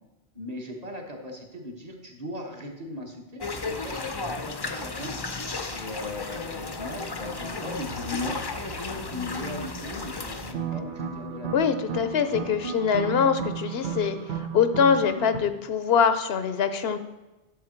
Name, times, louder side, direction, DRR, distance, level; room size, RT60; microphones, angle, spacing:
voice 1, 0.3-3.9 4.2-5.2 5.7-8.4 8.9-11.8 12.2-12.5, left 1 dB, 40° right, 0 dB, 1.5 m, -38 dB
sound 1, 3.4-10.5, left 3 dB, 30° left, 0.5 m, -34 dB
sound 2, 7.8-10.9, equal, 60° right, 1.3 m, -46 dB
sound 3, 10.4-15.4, right 7 dB, 80° right, 1.2 m, -34 dB
voice 2, 11.5-17.0, left 7 dB, 75° left, 10 dB, 0.9 m, -24 dB
11.0 x 7.2 x 4.4 m, 1.1 s
omnidirectional pair, 1.1 m